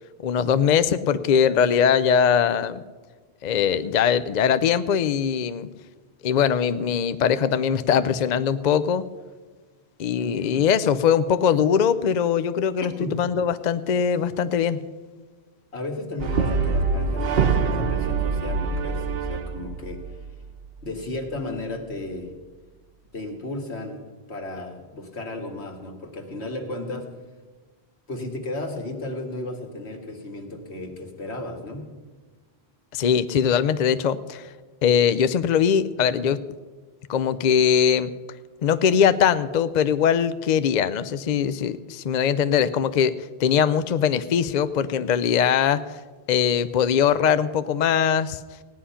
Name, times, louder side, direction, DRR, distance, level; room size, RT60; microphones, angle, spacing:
voice 1, 0.2-2.8 3.4-5.7 6.2-9.1 10.0-14.8 32.9-34.5 34.8-36.4 37.1-38.1 38.6-43.1 43.4-46.0 46.3-48.4, left 7 dB, 55° left, 13 dB, 0.5 m, -21 dB
voice 2, 10.2-10.6 13.0-13.2 15.7-20.0 20.8-22.3 23.1-24.0 24.3-27.1 28.1-31.8, left 2 dB, 80° left, 3 dB, 2.1 m, -34 dB
Brass instrument, 16.2-20.5, right 5 dB, 65° right, 1.0 m, -24 dB
16.5 x 10.0 x 5.7 m, 1.4 s
omnidirectional pair, 1.1 m